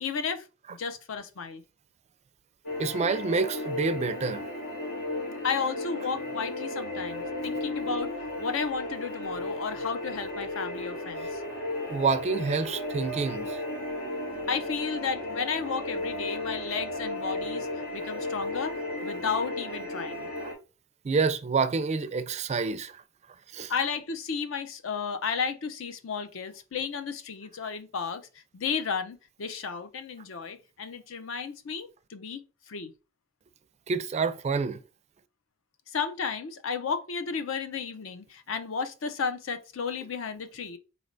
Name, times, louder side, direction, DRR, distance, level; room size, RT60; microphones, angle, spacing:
voice 1, 0.0-1.6 5.4-11.4 14.5-17.7 17.9-20.3 23.7-32.9 35.9-40.8, left 5 dB, 70° left, 0.6 m, -33 dB
sound 1, 2.6-20.5, left 1 dB, 85° left, 1.8 m, -34 dB
voice 2, 2.8-4.5 11.9-13.6 21.0-23.0 23.5-23.7 33.9-34.8, right 4 dB, 35° right, 0.4 m, -28 dB
4.0 x 3.2 x 2.6 m
head